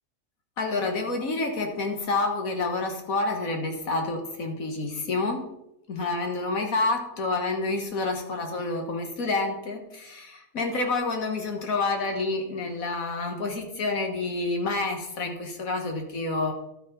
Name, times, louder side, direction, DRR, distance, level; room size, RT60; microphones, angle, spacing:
voice 1, 0.6-5.5 5.9-16.5, left 3 dB, 80° left, 4 dB, 1.9 m, -28 dB
12.0 x 6.5 x 5.3 m, 0.84 s
omnidirectional pair, 1.4 m